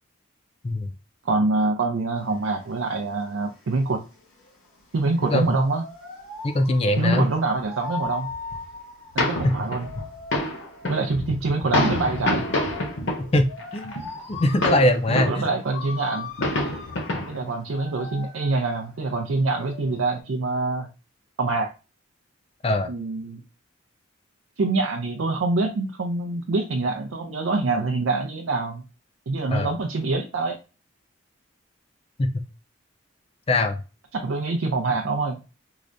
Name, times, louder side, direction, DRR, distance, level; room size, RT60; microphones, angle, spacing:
voice 1, 1.2-4.0 4.9-5.8 7.0-8.3 9.1-9.9 10.8-12.5 15.1-16.3 17.3-20.9 21.4-21.7 22.9-23.4 24.6-28.8 29.3-30.6 34.1-35.4, right 3 dB, 75° right, 2 dB, 0.5 m, -25 dB
sound 1, 2.2-20.2, left 3 dB, 80° left, 1.1 m, -41 dB
voice 2, 5.2-5.6 6.4-7.3 9.4-9.6 13.3-13.9 14.3-15.3 22.6-22.9 29.5-29.7 32.2-32.4 33.5-33.8, left 1 dB, 30° left, 8 dB, 0.4 m, -22 dB
sound 2, 7.0-7.4 8.0-8.1 8.3-8.6 9.2-15.5 15.9-16.0 16.2-17.5 18.1-18.2, left 1 dB, 60° left, 0.7 m, -27 dB
4.7 x 2.1 x 2.5 m, 0.32 s
head